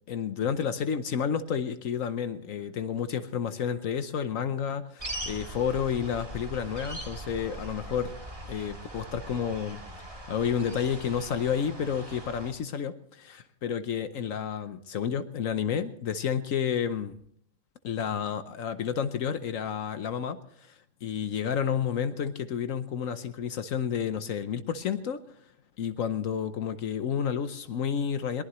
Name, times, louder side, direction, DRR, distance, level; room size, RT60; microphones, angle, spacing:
voice 1, 0.1-8.1 8.5-9.8 10.3-17.2 17.8-20.7 21.0-25.2 25.8-28.4, left 8 dB, 75° left, 11 dB, 1.2 m, -30 dB
sound 1, 5.0-12.5, right 1 dB, 25° right, 2.2 m, -41 dB
22.0 x 20.0 x 3.1 m, 0.64 s
omnidirectional pair, 1.4 m